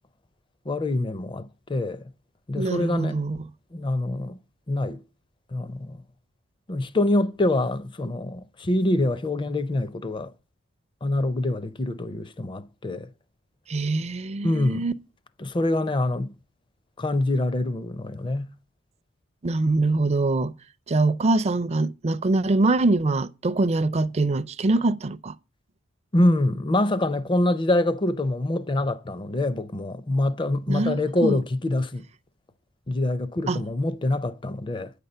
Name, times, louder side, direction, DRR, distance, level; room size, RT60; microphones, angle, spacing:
voice 1, 0.7-2.1 2.5-3.2 3.7-4.4 4.7-5.0 5.5-6.0 6.7-10.3 11.0-13.1 14.4-14.9 15.4-16.3 17.0-18.5 26.1-32.1 32.9-34.9, left 1 dB, 25° left, 0.5 m, -25 dB
voice 2, 2.6-3.5 13.7-14.9 19.4-20.5 20.9-25.3 30.7-31.4 33.5-33.6, right 2 dB, 30° right, 0.4 m, -23 dB
9.2 x 6.8 x 5.4 m
head